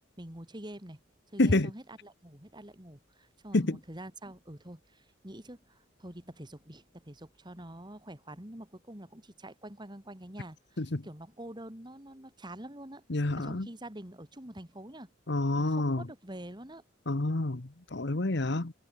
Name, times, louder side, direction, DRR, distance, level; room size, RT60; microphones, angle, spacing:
voice 1, 0.2-1.0 1.3-13.0 13.3-15.1 15.6-16.8, right 1 dB, 20° right, 3.1 m, -46 dB
voice 2, 1.4-1.7 3.5-3.8 10.8-11.0 13.1-13.7 15.3-16.0 17.1-18.7, left 2 dB, 55° left, 1.2 m, -28 dB
head